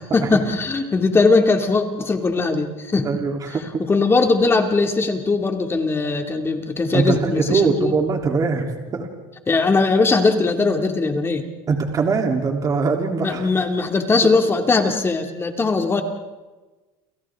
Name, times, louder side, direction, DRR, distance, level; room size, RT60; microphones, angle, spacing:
voice 1, 0.1-3.1 3.9-7.9 9.5-11.5 13.2-16.0, left 3 dB, 20° left, 4 dB, 2.4 m, -19 dB
voice 2, 3.0-3.6 6.9-9.1 11.7-13.6, right 4 dB, 30° right, 2 dB, 3.3 m, -22 dB
30.0 x 29.5 x 3.7 m, 1.2 s
cardioid pair, 125°, 12 cm